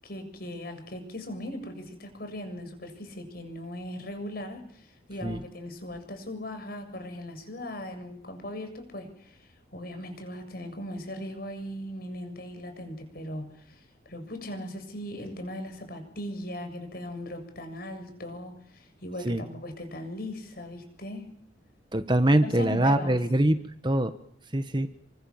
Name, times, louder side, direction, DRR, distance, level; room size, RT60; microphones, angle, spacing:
voice 1, 0.0-21.3 22.4-23.2, left 1 dB, 50° left, 7 dB, 7.3 m, -39 dB
voice 2, 21.9-23.6 23.8-24.1 24.5-24.9, right 1 dB, 25° right, 10 dB, 1.4 m, -23 dB
29.5 x 24.0 x 7.3 m, 0.64 s
head